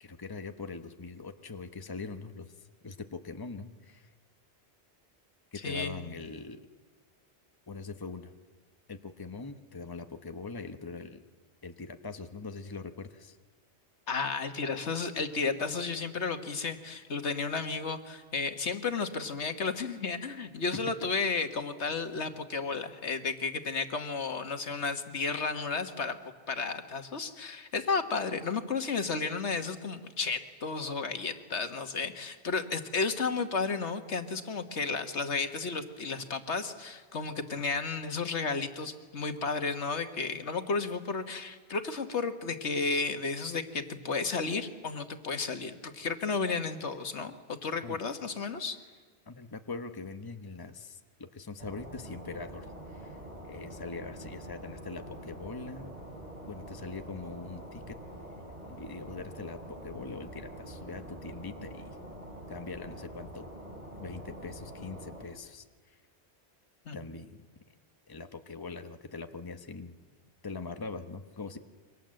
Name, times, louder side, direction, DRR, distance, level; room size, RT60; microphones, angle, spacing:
voice 1, 0.0-2.5 2.8-4.1 5.5-6.6 7.7-8.3 8.9-11.2 11.6-13.4 47.8-48.0 49.3-53.2 53.4-56.0 56.5-58.0 58.7-61.9 62.5-63.4 64.0-66.0 66.9-67.5 68.1-70.0 70.4-71.6, left 4 dB, 20° left, 7 dB, 1.1 m, -42 dB
voice 2, 5.6-6.1 14.1-26.2 26.5-48.8 66.9-67.0, left 4 dB, 80° left, 8 dB, 1.8 m, -33 dB
sound 1, 51.6-65.2, right 1 dB, 35° right, 4.6 m, -45 dB
27.5 x 24.0 x 7.7 m, 1.4 s
omnidirectional pair, 1.1 m